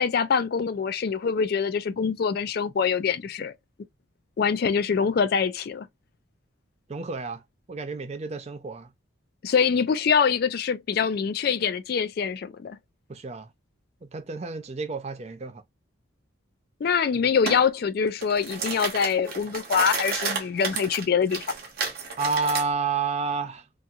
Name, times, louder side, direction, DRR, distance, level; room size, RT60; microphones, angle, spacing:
voice 1, 0.0-3.5 4.4-5.9 9.4-12.8 16.8-21.5, left 6 dB, 50° left, 0.3 m, -24 dB
voice 2, 6.9-7.4 7.7-8.9 13.1-13.5 14.1-15.6 22.2-23.7, right 4 dB, 30° right, 0.4 m, -30 dB
sound 1, 17.5-17.6 18.1-22.7, right 5 dB, 45° right, 0.8 m, -31 dB
2.9 x 2.6 x 2.3 m
head